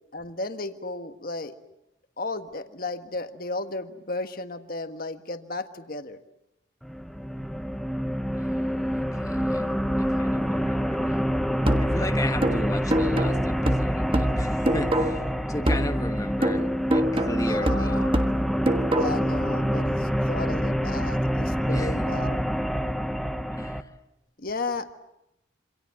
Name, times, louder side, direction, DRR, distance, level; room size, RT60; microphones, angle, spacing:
voice 1, 0.1-1.5 2.2-6.2 17.4-18.1 19.0-22.4 24.4-25.0, left 2 dB, 45° left, 8 dB, 1.6 m, -34 dB
sound 1, 6.8-23.8, equal, ahead, 1.0 m, -27 dB
voice 2, 8.3-9.7 10.1-11.2 11.8-18.1 21.7-22.1 23.5-23.9, left 1 dB, 15° left, 7 dB, 1.3 m, -35 dB
sound 2, 11.7-15.3 15.7-19.3, equal, 25° right, 1.4 m, -26 dB
27.5 x 26.0 x 7.7 m, 0.87 s
head